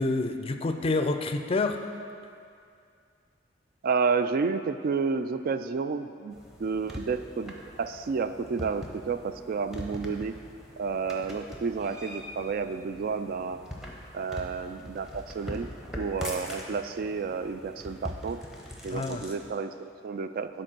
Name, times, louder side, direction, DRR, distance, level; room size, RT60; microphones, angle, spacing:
voice 1, 0.0-1.8 18.9-19.3, left 3 dB, 30° left, 7 dB, 0.4 m, -28 dB
voice 2, 3.8-6.3 6.6-10.4 10.8-13.6 14.1-15.7 16.0-18.4 18.8-20.6, right 5 dB, 50° right, 10 dB, 0.3 m, -30 dB
sound 1, 6.3-19.5, left 1 dB, 5° right, 0.9 m, -42 dB
10.0 x 4.4 x 6.1 m, 2.4 s
head